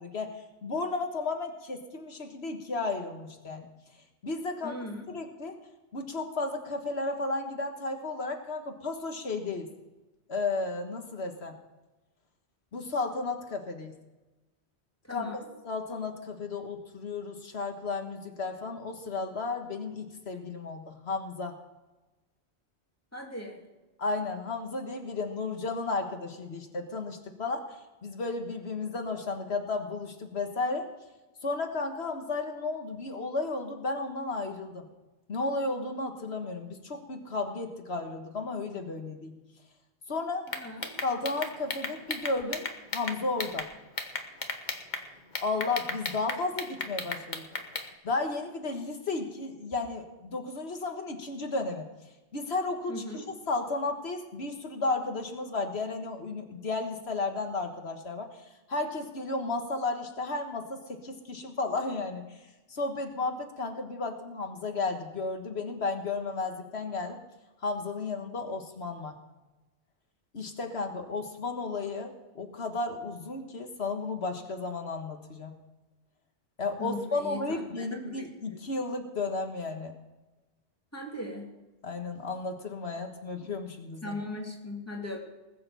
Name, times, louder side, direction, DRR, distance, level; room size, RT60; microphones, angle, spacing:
voice 1, 0.0-3.7 4.2-4.8 5.1-5.6 5.9-9.7 10.3-11.6 12.7-13.9 15.1-21.5 24.0-27.8 28.0-30.9 31.4-34.9 35.3-39.3 40.1-40.5 41.0-42.7 42.9-43.7 45.4-47.4 48.0-51.8 52.3-58.3 58.7-62.2 62.7-67.2 67.6-69.2 70.3-75.5 76.6-79.9 81.8-84.2, left 3 dB, 70° left, 4 dB, 1.8 m, -33 dB
voice 2, 4.6-5.0 15.1-15.4 23.1-23.6 40.6-40.8 52.9-53.2 76.8-77.6 78.1-78.2 80.9-81.4 84.0-85.2, left 1 dB, 15° left, 0 dB, 2.6 m, -38 dB
sound 1, 40.5-43.7 44.0-45.0 45.3-47.9, left 3 dB, 45° left, 1.4 m, -34 dB
20.0 x 6.9 x 6.9 m, 1.1 s
omnidirectional pair, 1.1 m